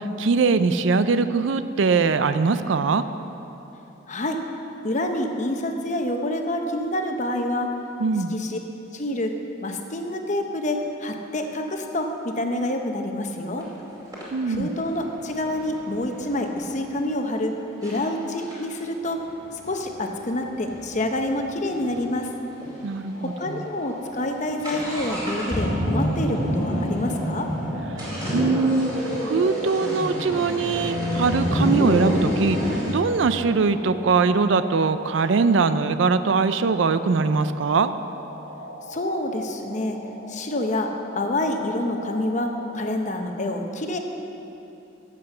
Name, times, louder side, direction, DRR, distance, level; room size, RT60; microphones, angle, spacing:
voice 1, 0.0-3.1 8.0-8.3 14.3-14.7 22.8-23.6 27.9-28.9 29.2-37.9, right 4 dB, 65° right, 12 dB, 0.4 m, -22 dB
voice 2, 4.1-4.4 4.8-7.7 8.3-8.6 8.9-9.3 9.6-13.7 14.5-17.5 17.8-19.2 19.5-22.3 23.2-27.5 38.9-40.0 40.3-44.0, left 1 dB, 40° left, 4 dB, 0.9 m, -27 dB
sound 1, 13.6-13.7 14.1-16.8 17.4-17.5 17.8-18.0 18.4-22.1 22.3-22.4 22.6-22.7 23.3-23.5 23.8-32.9, equal, 20° right, 2.6 m, -28 dB
sound 2, 23.1-43.0, left 1 dB, 85° left, 2.0 m, -41 dB
13.5 x 7.6 x 5.6 m, 3.0 s
head